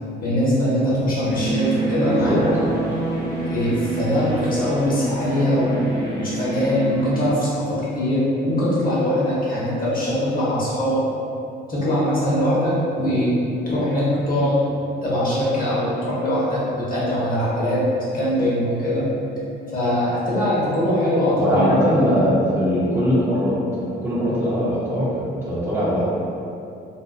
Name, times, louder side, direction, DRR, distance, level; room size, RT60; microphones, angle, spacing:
voice 1, 0.2-2.5 3.5-5.7 6.1-11.0 11.7-13.3 13.7-14.6 15.0-17.8 18.1-19.0 19.7-21.9, equal, 45° left, -8 dB, 0.9 m, -22 dB
sound 1, 1.2-7.3, right 2 dB, 75° left, 0.7 m, -26 dB
voice 2, 21.4-26.0, equal, 10° right, -9 dB, 0.6 m, -21 dB
2.6 x 2.2 x 2.3 m, 2.7 s
cardioid pair, 90°, 20 cm